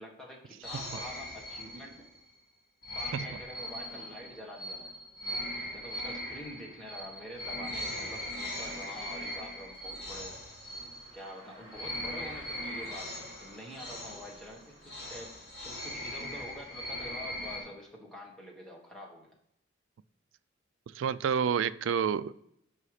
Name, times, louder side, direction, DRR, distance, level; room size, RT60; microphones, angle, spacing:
voice 1, 0.0-2.0 2.9-4.9 5.7-10.4 11.1-19.3, equal, ahead, -2 dB, 1.5 m, -46 dB
sound 1, 0.6-2.2 2.8-11.4 11.7-17.6, left 1 dB, 55° left, 2.7 m, -40 dB
Car, 8.5-17.1, right 1 dB, 30° right, 2.6 m, -56 dB
voice 2, 20.9-22.3, right 7 dB, 85° right, 14 dB, 0.3 m, -29 dB
5.6 x 5.5 x 4.8 m, 0.75 s
head